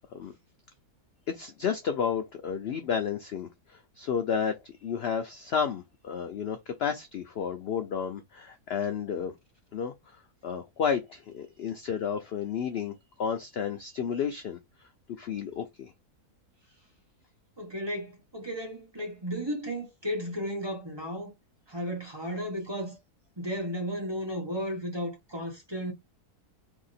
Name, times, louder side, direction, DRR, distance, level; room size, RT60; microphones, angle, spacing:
voice 1, 1.3-9.3 9.7-9.9 10.4-14.6 15.2-15.9, left 7 dB, 70° left, 0.5 m, -31 dB
voice 2, 17.6-21.3 21.7-23.0 23.4-25.9, equal, 20° right, 1.0 m, -34 dB
2.8 x 2.7 x 4.0 m
omnidirectional pair, 1.7 m